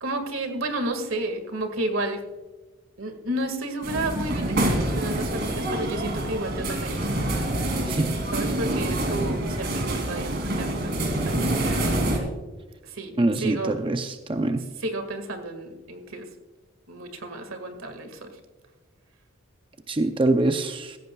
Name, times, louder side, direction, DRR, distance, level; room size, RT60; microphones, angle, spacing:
voice 1, 0.0-2.2 3.0-7.1 8.3-10.9 11.3-12.0 12.9-13.1 13.4-13.8 14.8-16.3 16.9-18.3, right 1 dB, 85° right, 7 dB, 2.0 m, -32 dB
sound 1, 3.8-12.2, right 1 dB, 50° right, 2.8 m, -26 dB
voice 2, 13.2-14.6 19.9-21.0, right 2 dB, 25° right, 7 dB, 0.6 m, -24 dB
16.5 x 15.0 x 2.3 m, 1.3 s
head